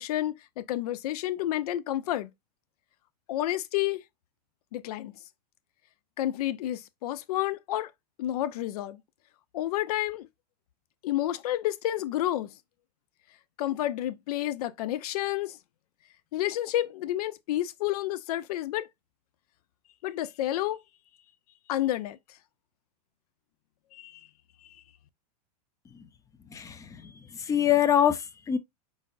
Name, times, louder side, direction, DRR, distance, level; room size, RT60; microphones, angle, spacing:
voice 1, 0.0-2.3 3.3-4.0 4.7-5.1 6.2-7.9 8.2-9.0 9.5-10.3 11.0-12.5 13.6-15.6 16.3-18.9 20.0-20.8 21.7-22.2 23.9-24.2 24.6-24.8, left 13 dB, 65° left, 0.6 m, -30 dB
voice 2, 26.5-26.9 27.4-28.6, left 10 dB, 15° left, 0.5 m, -24 dB
4.8 x 4.2 x 2.4 m
supercardioid pair, 135°, 21 cm